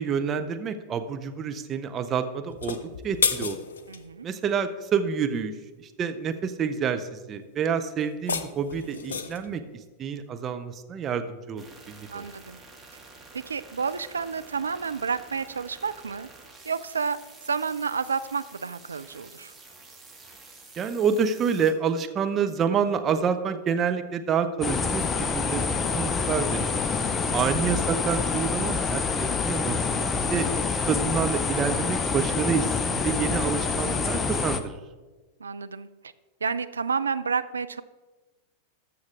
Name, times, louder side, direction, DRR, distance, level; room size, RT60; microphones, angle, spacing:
voice 1, 0.0-3.6 4.2-5.5 5.8-9.6 10.0-12.2 20.8-26.6 27.3-30.0 30.3-30.5 30.7-34.8, right 6 dB, 25° right, 8 dB, 0.7 m, -28 dB
sound 1, 2.5-4.0 8.0-9.5, left 6 dB, 65° left, 0.6 m, -30 dB
voice 2, 3.9-4.3 12.1-12.6 13.3-16.3 16.6-17.2 17.5-19.5 27.0-27.3 35.4-35.9 36.4-37.8, right 5 dB, 75° right, 12 dB, 0.4 m, -30 dB
sound 2, 11.6-21.7, right 3 dB, 10° right, 1.5 m, -49 dB
sound 3, 24.6-34.6, left 4 dB, 20° left, 0.6 m, -27 dB
14.0 x 6.4 x 3.6 m, 1.2 s
figure-of-eight pair, 90°, 0 cm